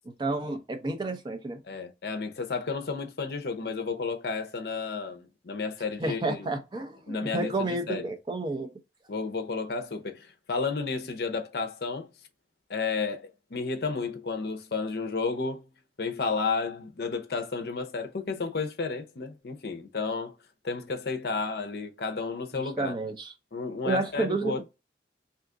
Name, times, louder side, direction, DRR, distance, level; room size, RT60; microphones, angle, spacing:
voice 1, 0.2-1.6 6.0-8.7 22.5-23.3 23.9-24.6, right 2 dB, 25° right, 0.5 m, -30 dB
voice 2, 1.6-6.5 7.1-8.1 9.1-12.1 12.7-15.6 16.0-20.3 20.6-22.9 23.5-24.6, left 4 dB, 65° left, 0.6 m, -32 dB
2.8 x 2.4 x 3.6 m
head